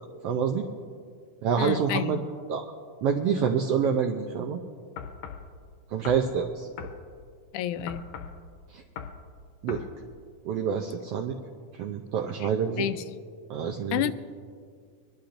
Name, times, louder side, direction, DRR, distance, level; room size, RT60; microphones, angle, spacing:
voice 1, 0.2-0.6 1.4-2.2 2.5-2.6 3.0-4.6 5.9-6.7 8.7-8.8 9.6-9.8 10.4-11.3 11.7-12.9 13.5-14.0, right 7 dB, 80° right, 3 dB, 1.3 m, -27 dB
voice 2, 1.6-2.2 7.5-8.1 12.4-12.5 12.8-13.0 13.9-14.1, left 12 dB, 90° left, 12 dB, 2.0 m, -29 dB
sound 1, 5.0-5.5 6.1-6.3 6.8-7.0 7.9-8.4 9.0-9.2 9.7-9.9, left 7 dB, 70° left, 1.9 m, -39 dB
23.5 x 11.5 x 2.6 m, 2.1 s
omnidirectional pair, 3.4 m